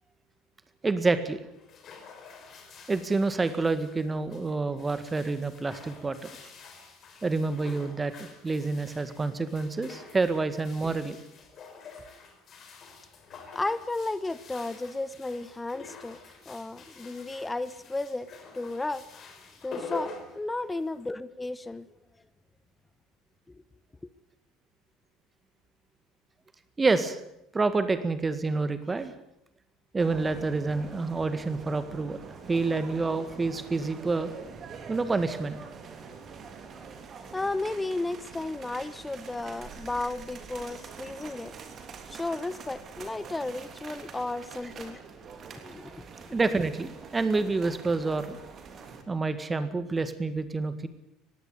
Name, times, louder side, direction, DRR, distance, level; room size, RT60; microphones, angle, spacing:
voice 1, 0.8-1.4 2.9-6.3 7.2-11.2 26.8-27.2 27.5-29.1 29.9-32.2 32.4-34.3 34.9-35.6 46.3-48.4 49.1-50.9, right 3 dB, 20° right, 1.8 m, -28 dB
sound 1, 1.5-21.1, left 4 dB, 40° left, 5.0 m, -47 dB
voice 2, 13.5-16.2 16.5-19.1 19.6-21.9 23.5-23.6 24.0-24.1 37.3-41.5 42.1-45.0 45.6-46.3, left 2 dB, 15° left, 0.9 m, -34 dB
sound 2, 30.0-49.0, right 5 dB, 40° right, 3.3 m, -45 dB
20.0 x 16.0 x 9.3 m
figure-of-eight pair, 65°, 0 cm